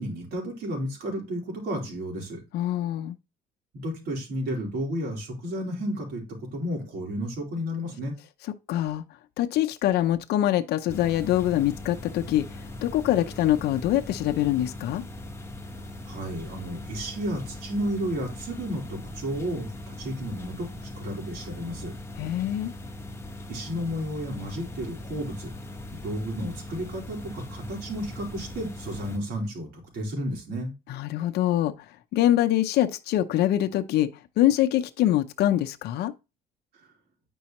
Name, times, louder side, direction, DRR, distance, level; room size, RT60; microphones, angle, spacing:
voice 1, 0.0-2.4 3.7-6.2 6.5-8.1 16.1-20.7 20.9-21.9 23.5-25.5 25.9-30.7, equal, 70° right, 4.0 m, -32 dB
voice 2, 2.5-3.2 8.7-9.0 9.4-12.4 12.8-15.0 22.2-22.7 30.9-31.7 32.1-34.1 34.4-36.1, left 13 dB, 75° left, 0.6 m, -24 dB
sound 1, 10.9-29.2, left 1 dB, 15° left, 1.1 m, -40 dB
9.4 x 5.4 x 3.0 m
cardioid pair, 110°, 17 cm